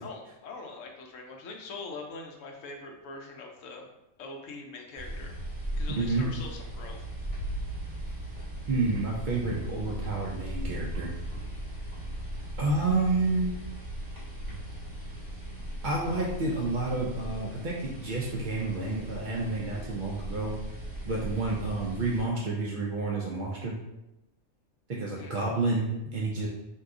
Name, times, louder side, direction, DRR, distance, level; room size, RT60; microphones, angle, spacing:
voice 1, 0.0-3.9 4.2-5.3 5.8-7.0 25.1-25.4, left 3 dB, 75° left, 1 dB, 0.9 m, -42 dB
sound 1, 4.9-22.2, right 1 dB, 15° right, 1.0 m, -38 dB
voice 2, 6.0-6.3 8.7-11.1 12.6-13.6 15.8-20.6 21.0-23.8 24.9-26.5, right 3 dB, 80° right, -3 dB, 0.4 m, -29 dB
2.7 x 2.3 x 3.5 m, 0.93 s
omnidirectional pair, 1.4 m